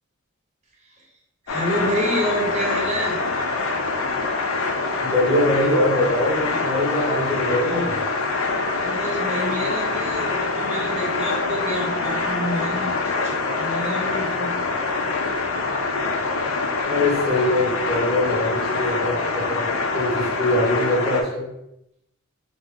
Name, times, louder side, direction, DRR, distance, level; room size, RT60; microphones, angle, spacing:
voice 1, 1.4-3.2 8.8-14.5, equal, 35° right, -2 dB, 0.8 m, -28 dB
sound 1, 1.5-21.2, left 3 dB, 75° left, 0.4 m, -25 dB
voice 2, 5.0-7.9 16.8-21.5, left 1 dB, ahead, -9 dB, 1.2 m, -23 dB
3.5 x 2.0 x 3.5 m, 0.83 s
head